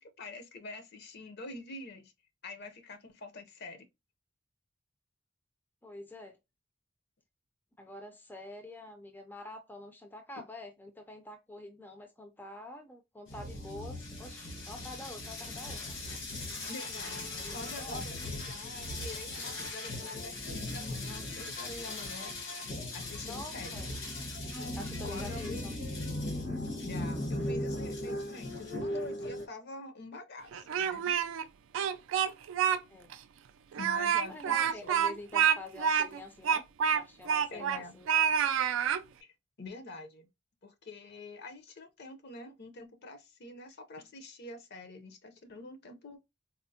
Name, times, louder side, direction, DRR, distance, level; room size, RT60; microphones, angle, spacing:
voice 1, 0.0-2.1 2.4-3.9 16.7-22.3 22.9-23.8 25.0-25.7 26.8-31.1 33.8-34.9 37.5-38.0 39.2-40.3 40.6-46.2, left 2 dB, 55° left, 0.6 m, -46 dB
voice 2, 5.8-6.4 7.8-16.0 17.3-18.0 23.2-23.9 24.7-25.7 32.9-33.1 34.3-36.6 36.9-38.1, left 1 dB, 10° left, 0.4 m, -46 dB
sound 1, 13.3-29.5, left 1 dB, 75° left, 1.1 m, -38 dB
Speech, 30.5-31.4 31.7-32.8 33.1-33.2 33.7-37.8 38.1-39.0, right 8 dB, 75° right, 0.3 m, -28 dB
4.2 x 2.0 x 2.6 m
head